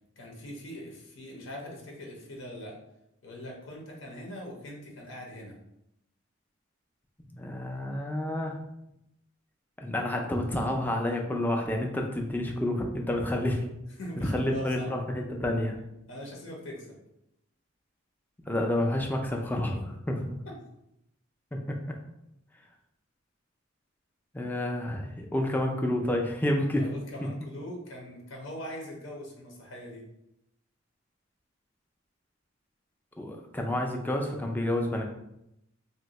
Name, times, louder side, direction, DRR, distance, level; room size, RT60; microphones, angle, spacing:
voice 1, 0.2-2.7 3.2-5.5 14.0-14.9 16.1-17.0 20.5-20.6 26.8-30.0, equal, 80° left, -1 dB, 0.8 m, -41 dB
voice 2, 7.3-8.6 9.8-13.7 14.3-15.8 18.5-20.4 21.5-22.0 24.3-26.9 33.2-35.0, left 1 dB, 10° left, 2 dB, 0.3 m, -29 dB
2.6 x 2.1 x 3.9 m, 0.83 s
head